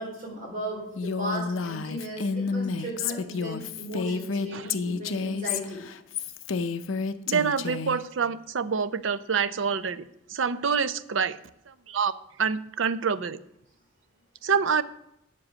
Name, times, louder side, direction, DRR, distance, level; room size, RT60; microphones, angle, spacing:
voice 1, 0.0-5.8, equal, 40° right, -2 dB, 4.1 m, -36 dB
Female speech woman speaking, 1.0-8.0, left 5 dB, 85° left, 0.6 m, -30 dB
voice 2, 7.3-10.0 10.3-11.4 11.7-12.1 12.4-13.4 14.4-14.8, right 6 dB, 70° right, 14 dB, 0.6 m, -26 dB
8.6 x 7.5 x 6.3 m, 0.81 s
head